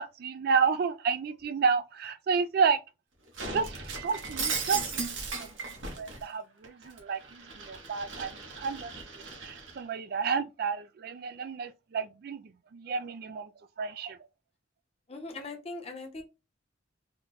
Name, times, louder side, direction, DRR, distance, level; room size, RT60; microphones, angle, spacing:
voice 1, 0.0-2.8 3.5-5.5 6.0-8.9 9.4-12.4 12.7-13.5 13.8-14.2, right 5 dB, 55° right, 0.3 m, -31 dB
Shatter, 3.3-6.2 6.6-9.8, right 4 dB, 85° right, 1.1 m, -37 dB
voice 2, 15.1-16.2, left 2 dB, 30° left, 0.8 m, -40 dB
3.7 x 2.2 x 3.9 m
head